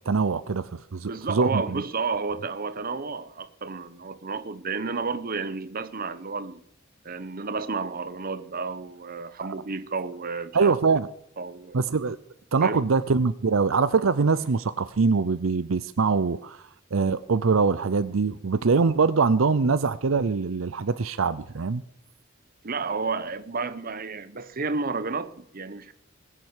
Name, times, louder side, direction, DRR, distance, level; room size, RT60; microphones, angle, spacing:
voice 1, 0.1-1.8 10.5-11.1 11.7-12.2 12.5-16.6 16.9-21.8, right 4 dB, 75° right, 0.6 m, -23 dB
voice 2, 1.1-6.6 7.0-10.7 11.4-11.8 12.6-12.8 22.6-25.9, right 4 dB, 45° right, 1.0 m, -31 dB
20.5 x 7.6 x 8.2 m
head